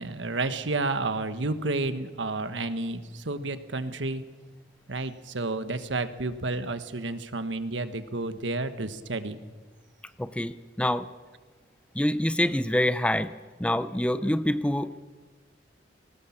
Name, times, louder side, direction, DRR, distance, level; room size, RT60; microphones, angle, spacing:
voice 1, 0.0-4.2 4.9-9.4, right 2 dB, 80° right, 11 dB, 1.3 m, -31 dB
voice 2, 10.2-11.1 11.9-13.3 13.6-14.9, left 1 dB, 5° left, 14 dB, 0.5 m, -26 dB
20.0 x 18.5 x 7.2 m, 1.4 s
head